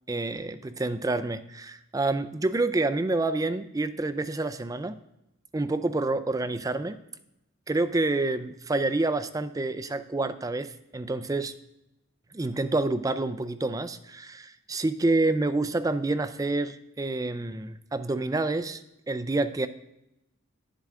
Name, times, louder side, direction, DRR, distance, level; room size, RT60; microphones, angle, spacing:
voice 1, 0.1-5.0 5.5-7.0 7.7-11.5 12.3-19.7, right 2 dB, 15° right, 11 dB, 0.3 m, -28 dB
10.0 x 7.5 x 3.6 m, 0.86 s
head